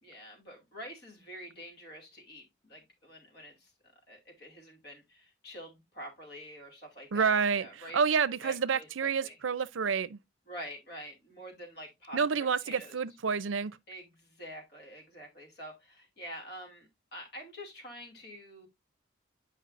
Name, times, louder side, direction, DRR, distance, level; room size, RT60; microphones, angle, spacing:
voice 1, 0.0-3.7 4.1-8.0 8.4-9.4 10.5-13.0 13.9-18.7, equal, 55° left, 2.5 m, -47 dB
voice 2, 7.1-7.7 7.9-10.2 12.1-13.7, right 6 dB, 80° right, 0.5 m, -28 dB
8.8 x 5.3 x 2.5 m
head